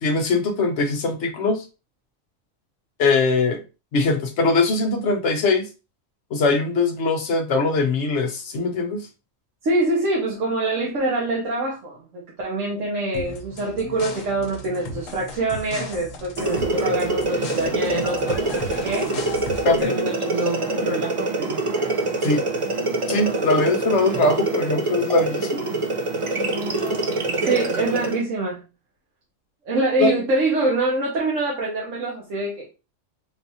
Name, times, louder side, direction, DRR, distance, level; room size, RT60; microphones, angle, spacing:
voice 1, 0.0-1.6 3.0-3.6 3.9-5.7 6.3-9.0 19.6-19.9 22.2-22.4 23.1-25.6 30.0-30.1, left 3 dB, 65° left, 5 dB, 0.9 m, -21 dB
voice 2, 9.6-19.1 19.8-21.7 27.5-28.6 29.6-32.7, right 2 dB, 75° right, -3 dB, 1.2 m, -25 dB
sound 1, 13.1-19.9, left 2 dB, 85° left, 1.1 m, -36 dB
sound 2, 16.4-28.2, right 2 dB, 40° right, 0.4 m, -25 dB
3.9 x 2.4 x 2.7 m, 0.30 s
omnidirectional pair, 1.3 m